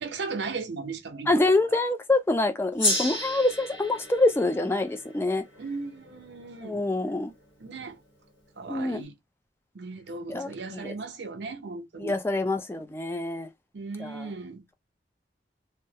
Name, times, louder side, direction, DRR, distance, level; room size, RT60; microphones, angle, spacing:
voice 1, 0.0-1.5 5.6-6.8 7.6-8.0 8.6-9.1 9.7-12.2 13.7-14.6, right 4 dB, 70° right, 0.6 m, -37 dB
voice 2, 1.3-5.4 6.6-7.3 8.7-9.0 10.3-10.9 12.0-13.5 14.0-14.3, left 2 dB, 15° left, 0.3 m, -26 dB
Gong, 2.8-7.5, left 1 dB, 85° left, 1.1 m, -33 dB
2.3 x 2.0 x 2.7 m
head